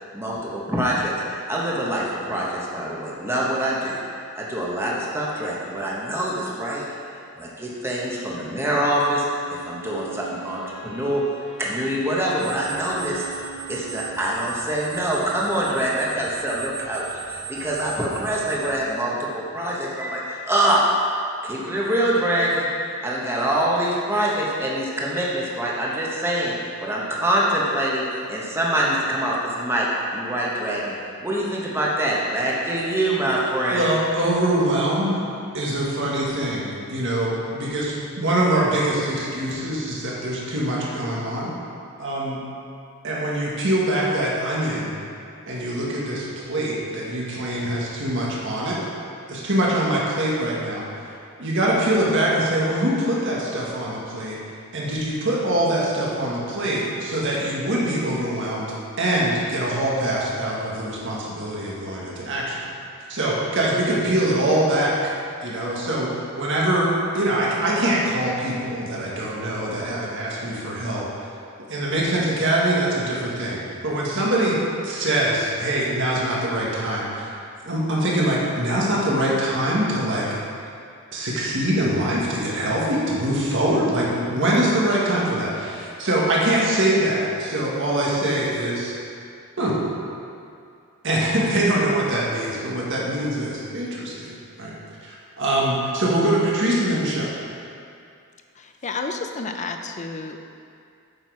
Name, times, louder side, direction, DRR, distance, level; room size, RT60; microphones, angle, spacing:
voice 1, 0.1-4.0 4.4-6.8 7.4-11.2 11.6-13.2 13.7-20.8 21.4-30.9 31.2-33.9, right 1 dB, 10° right, -5 dB, 1.2 m, -25 dB
Bowed string instrument, 9.1-14.5, right 4 dB, 55° left, 1.3 m, -42 dB
sound 1, 12.4-18.8, right 8 dB, 40° right, 1.2 m, -37 dB
voice 2, 33.7-35.2 35.5-41.5 42.0-42.4 43.0-44.9 45.5-48.8 49.3-50.9 51.4-54.4 54.7-62.6 63.1-65.0 65.4-66.1 66.4-66.9 67.1-71.1 71.7-74.6 74.8-77.3 77.6-80.3 81.1-88.9 89.6-89.7 91.0-94.7 95.0-97.3, right 1 dB, 60° right, -4 dB, 1.8 m, -23 dB
voice 3, 98.6-100.4, left 4 dB, 35° left, 5 dB, 0.6 m, -31 dB
8.7 x 6.4 x 4.8 m, 2.4 s
head